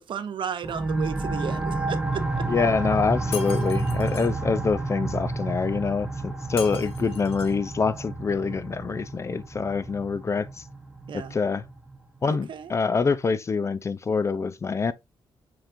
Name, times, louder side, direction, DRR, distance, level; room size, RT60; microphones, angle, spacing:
voice 1, 0.0-2.4 11.1-11.4 12.2-12.7, right 8 dB, 60° right, 0.7 m, -34 dB
sound 1, 0.6-12.0, right 2 dB, 10° right, 0.7 m, -30 dB
voice 2, 2.5-10.6 11.1-11.6 12.2-14.9, left 5 dB, 30° left, 0.3 m, -26 dB
Shatter, 3.3-4.3 6.6-7.6, left 7 dB, 85° left, 0.9 m, -39 dB
5.7 x 3.6 x 2.5 m
wide cardioid pair, 135°, 10 cm